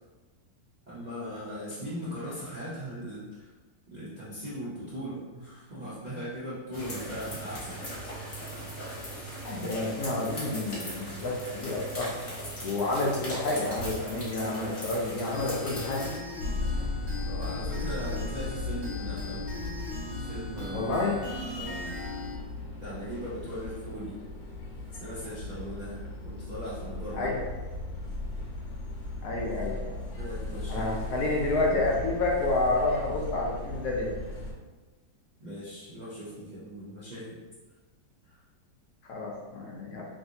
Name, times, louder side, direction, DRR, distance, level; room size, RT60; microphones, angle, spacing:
voice 1, 0.9-3.5 3.9-7.8 17.3-19.4 20.2-20.9 21.5-21.9 22.8-24.2 25.0-27.3 30.2-30.9 35.4-37.4 38.3-38.4, equal, 70° right, -10 dB, 0.4 m, -39 dB
sound 1, 6.7-16.2, equal, 40° left, 0.9 m, -38 dB
voice 2, 9.4-12.2 12.6-16.0 20.7-21.2 27.2-27.4 29.2-30.0 30.7-34.2 39.1-40.1, left 2 dB, 70° left, -2 dB, 1.0 m, -29 dB
sound 2, 15.3-22.3, left 2 dB, 50° right, 0.9 m, -39 dB
sound 3, 16.4-34.5, left 2 dB, 90° left, 1.4 m, -37 dB
3.2 x 2.6 x 2.7 m, 1.2 s
omnidirectional pair, 2.0 m